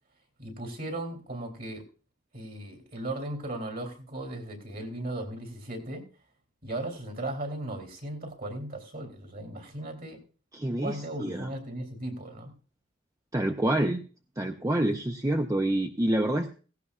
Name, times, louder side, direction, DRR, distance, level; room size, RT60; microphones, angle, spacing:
voice 1, 0.4-1.8 2.3-6.0 6.6-10.2 10.8-12.5, right 1 dB, 50° right, 4 dB, 3.0 m, -37 dB
voice 2, 10.5-11.5 13.3-14.0 14.4-16.5, right 1 dB, 15° right, 4 dB, 0.6 m, -27 dB
16.5 x 16.5 x 2.4 m, 0.37 s
head